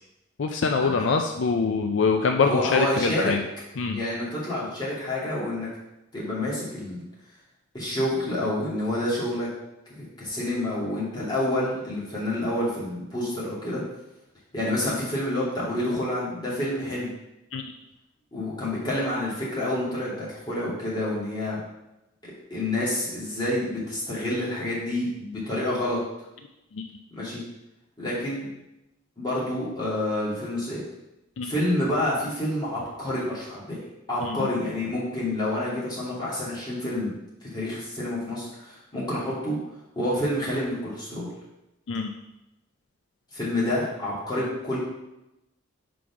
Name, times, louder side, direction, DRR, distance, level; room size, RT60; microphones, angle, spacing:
voice 1, 0.4-3.4 3.8-4.0 17.5-17.6 26.7-26.9 31.4-31.5 34.2-34.4 41.9-42.1, left 4 dB, 70° left, 4 dB, 0.4 m, -24 dB
voice 2, 2.4-3.3 3.9-5.7 6.1-7.0 7.7-9.5 10.0-13.8 14.5-17.1 18.3-21.6 22.5-26.0 27.1-27.4 28.0-28.5 29.2-30.8 31.4-33.8 34.1-37.1 37.5-39.6 40.0-41.3 43.3-44.8, left 1 dB, 20° left, -8 dB, 2.4 m, -28 dB
4.8 x 4.1 x 5.8 m, 0.92 s
head